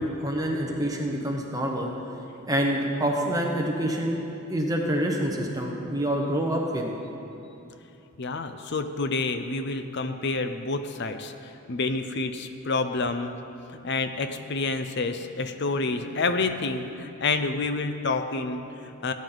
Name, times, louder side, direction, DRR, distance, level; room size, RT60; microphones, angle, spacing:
voice 1, 0.0-1.9 2.5-4.2 4.5-6.9, equal, 15° right, 0 dB, 1.1 m, -26 dB
voice 2, 8.2-13.3 13.7-19.1, left 3 dB, 50° left, 9 dB, 0.6 m, -28 dB
17.5 x 9.5 x 3.9 m, 2.8 s
head